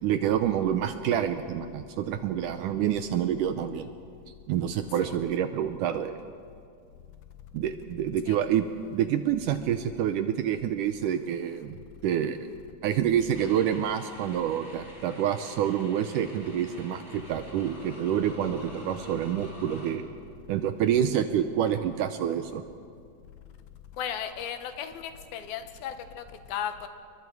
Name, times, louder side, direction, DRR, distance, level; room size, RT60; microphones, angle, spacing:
voice 1, 0.0-3.9 4.5-6.2 7.5-8.7 8.9-12.5 12.8-20.0 20.5-22.6, right 9 dB, 75° right, 9 dB, 2.0 m, -27 dB
sound 1, 13.3-19.9, left 2 dB, 15° left, 3.8 m, -45 dB
voice 2, 24.0-26.9, left 9 dB, 80° left, 8 dB, 3.0 m, -35 dB
29.5 x 22.5 x 4.7 m, 2.3 s
omnidirectional pair, 4.3 m